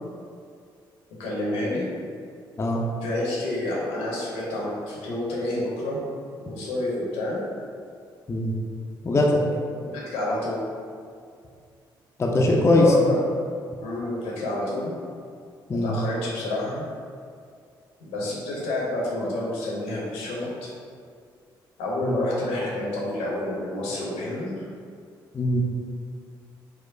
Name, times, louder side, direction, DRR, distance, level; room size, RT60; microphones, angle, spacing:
voice 1, 1.2-1.9 3.0-6.0 6.3-7.4 9.8-10.6 12.7-13.2 13.8-14.9 15.7-16.8 18.0-20.7 21.8-24.6, left 1 dB, 70° left, -5 dB, 0.7 m, -29 dB
voice 2, 9.0-9.4 12.2-12.9 15.7-16.0 22.0-22.1 25.3-25.6, left 2 dB, 25° left, -1 dB, 0.4 m, -20 dB
4.5 x 2.1 x 2.5 m, 2.2 s
figure-of-eight pair, 40°, 11 cm